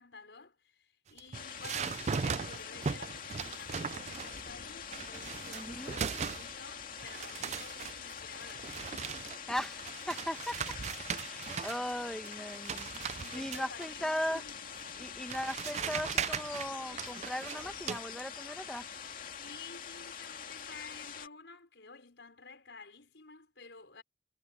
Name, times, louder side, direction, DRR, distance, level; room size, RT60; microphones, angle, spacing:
voice 1, 0.0-9.2 11.9-12.1 13.1-14.7 19.4-24.0, left 4 dB, 75° left, 5.2 m, -52 dB
sound 1, 1.1-4.5 4.9-6.7 7.0-11.9 12.2-13.9 14.8-14.9 15.3-18.0, right 6 dB, 40° right, 0.4 m, -38 dB
sound 2, 1.3-21.3, left 7 dB, 50° left, 2.5 m, -45 dB
voice 2, 5.5-6.0 9.5-10.5 11.2-14.4 15.0-18.9, equal, 5° left, 1.7 m, -38 dB
head